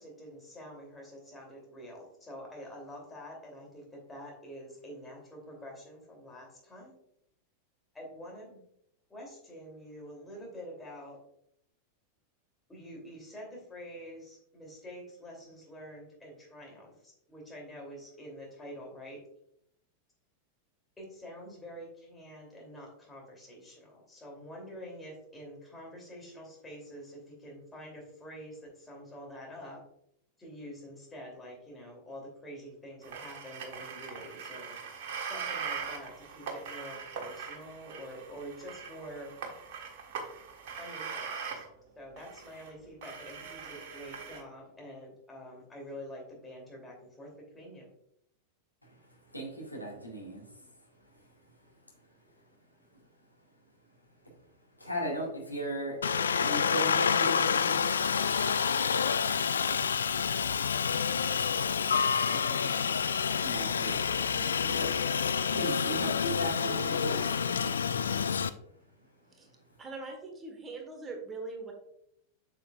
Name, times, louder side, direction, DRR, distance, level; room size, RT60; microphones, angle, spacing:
voice 1, 0.0-6.9 7.9-8.6 9.1-11.2 12.7-19.2 21.0-29.8 30.4-35.0 35.3-39.3 40.8-41.6 42.0-47.9, equal, 10° left, -1 dB, 2.8 m, -47 dB
sound 1, 33.0-41.7 42.2-42.7 43.0-44.4, right 6 dB, 50° right, 1.3 m, -41 dB
voice 2, 49.3-50.4 54.8-56.0 56.4-57.9 63.3-67.7, right 1 dB, 85° left, -2 dB, 1.9 m, -37 dB
Aircraft, 56.0-68.5, left 6 dB, 70° left, 0.3 m, -28 dB
voice 3, 69.8-71.7, right 3 dB, 20° right, 3 dB, 1.4 m, -41 dB
7.5 x 6.9 x 2.4 m, 0.75 s
figure-of-eight pair, 90°, 0 cm